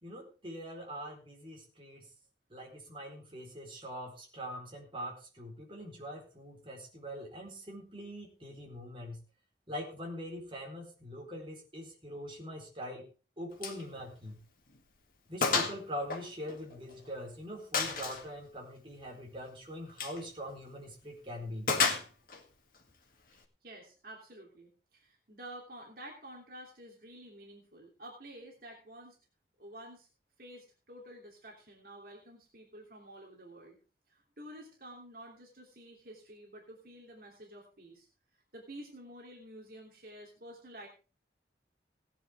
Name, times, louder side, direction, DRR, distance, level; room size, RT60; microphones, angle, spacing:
voice 1, 0.0-2.1 2.5-9.2 9.7-13.1 13.4-14.4 15.3-21.7, equal, 30° right, -1 dB, 4.1 m, -43 dB
Gunshot gunfire, 13.6-13.8 14.2-14.3 14.7-14.8 15.4-15.8 16.1-17.1 17.7-18.2 19.9-20.2 21.7-22.4, left 5 dB, 50° left, 2.0 m, -31 dB
voice 2, 23.6-29.2 29.6-30.1 30.4-33.8 34.1-38.1 38.5-40.9, right 1 dB, 55° right, -1 dB, 3.0 m, -50 dB
17.5 x 10.0 x 3.6 m, 0.34 s
head